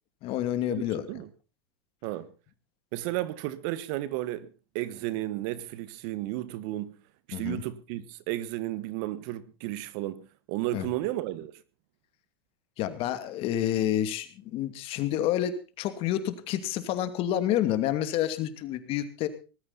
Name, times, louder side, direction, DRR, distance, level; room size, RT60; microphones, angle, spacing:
voice 1, 0.2-1.0 7.3-7.6 10.7-10.9 12.8-19.3, left 11 dB, 45° left, 2.5 m, -29 dB
voice 2, 2.0-2.3 2.9-4.5 4.7-6.9 7.3-11.5, right 15 dB, 55° right, 1.5 m, -33 dB
19.0 x 14.0 x 4.1 m
hypercardioid pair, 120°, 13 cm